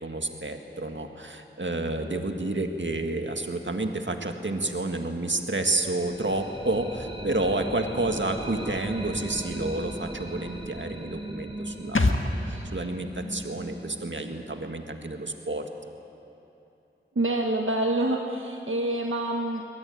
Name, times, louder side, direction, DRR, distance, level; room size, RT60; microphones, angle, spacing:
voice 1, 0.0-12.2 12.5-15.7, right 2 dB, 65° right, 5 dB, 1.9 m, -30 dB
sound 1, 5.6-15.3, right 1 dB, 25° right, 3.8 m, -39 dB
sound 2, 11.9-15.5 15.7-15.8, left 2 dB, 80° left, 1.6 m, -31 dB
voice 2, 17.1-19.6, right 1 dB, 85° right, 1 dB, 1.3 m, -27 dB
21.5 x 21.0 x 9.3 m, 2.9 s
wide cardioid pair, 45°, 20 cm